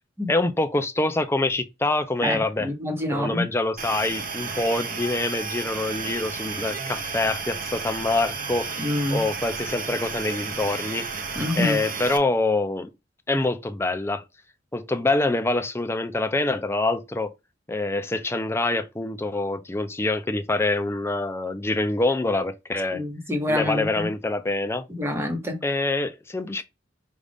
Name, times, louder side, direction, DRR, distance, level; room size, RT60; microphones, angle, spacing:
voice 1, 0.3-2.7 3.1-11.1 11.6-12.9 13.3-14.2 14.7-17.3 17.7-23.0 23.5-24.9 25.6-26.6, left 2 dB, 15° left, 0.5 m, -25 dB
voice 2, 2.2-3.5 8.8-9.2 11.3-11.8 22.9-24.1 25.0-25.6, left 1 dB, 15° right, 1.1 m, -27 dB
sound 1, 3.8-12.2, right 5 dB, 50° right, 0.7 m, -32 dB
5.2 x 2.5 x 3.4 m
head